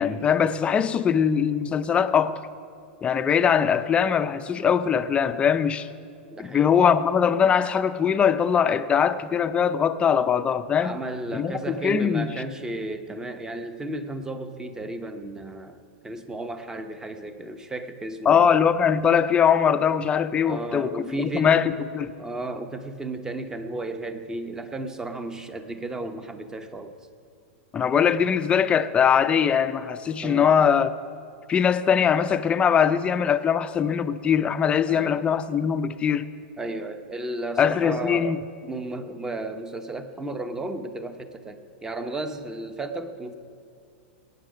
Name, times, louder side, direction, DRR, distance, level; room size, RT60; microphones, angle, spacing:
voice 1, 0.0-2.4 3.0-5.9 6.4-11.0 11.3-11.5 11.8-12.4 18.3-22.1 27.7-30.9 31.5-36.3 37.6-38.4, left 7 dB, 15° left, 0.5 m, -21 dB
voice 2, 6.3-6.7 10.8-15.8 16.0-18.5 20.4-21.6 22.2-27.0 30.2-30.7 34.9-35.3 36.6-38.4 38.7-43.4, right 2 dB, 10° right, 0.8 m, -34 dB
20.5 x 9.2 x 5.1 m
hypercardioid pair, 140°, 6 cm